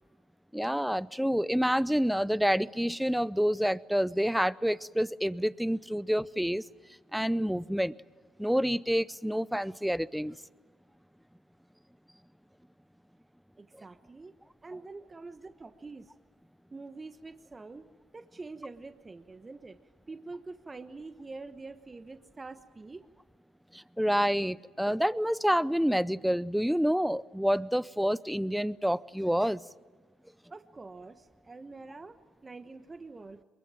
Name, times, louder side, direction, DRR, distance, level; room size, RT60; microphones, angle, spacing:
voice 1, 0.5-6.6 7.1-7.9 8.4-10.4 23.7-29.6, equal, ahead, 19 dB, 0.7 m, -28 dB
voice 2, 13.6-14.3 14.6-16.1 16.7-17.8 18.1-19.8 20.1-23.0 30.5-32.2 32.4-33.4, right 3 dB, 30° right, 9 dB, 1.2 m, -45 dB
23.0 x 21.5 x 9.0 m, 1.4 s
hypercardioid pair, 55°, 0 cm